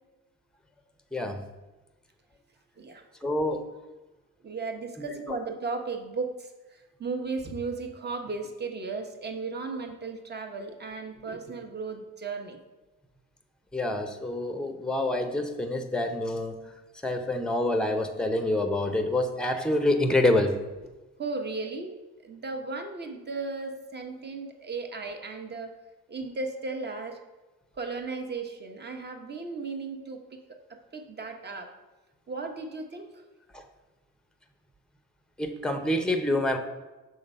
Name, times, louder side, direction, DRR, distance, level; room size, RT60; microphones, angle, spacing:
voice 1, 1.1-1.4 3.2-3.6 5.0-5.1 13.7-16.5 17.0-20.5 33.5-33.6 35.4-36.6, left 1 dB, 5° left, 7 dB, 0.7 m, -27 dB
voice 2, 4.4-12.6 21.2-22.0 22.2-25.7 26.1-27.2 27.8-31.7 32.3-33.2, right 4 dB, 35° right, 5 dB, 0.9 m, -35 dB
6.3 x 3.8 x 5.4 m, 1.1 s
cardioid pair, 90°, 30 cm